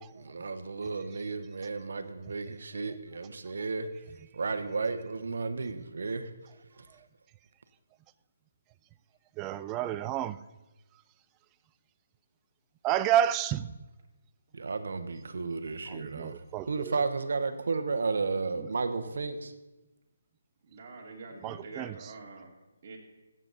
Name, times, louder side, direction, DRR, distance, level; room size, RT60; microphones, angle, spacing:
voice 1, 0.0-3.9 4.3-6.3 6.8-6.9 14.5-19.5, right 4 dB, 70° right, 9 dB, 1.1 m, -33 dB
voice 2, 9.4-10.4 12.8-13.9 15.9-17.0 18.6-18.7 21.4-22.0, right 11 dB, 15° right, 14 dB, 0.3 m, -30 dB
voice 3, 20.6-22.5 22.8-23.0, right 3 dB, 40° right, -1 dB, 2.4 m, -45 dB
16.0 x 7.7 x 4.0 m, 1.1 s
hypercardioid pair, 160°, 0 cm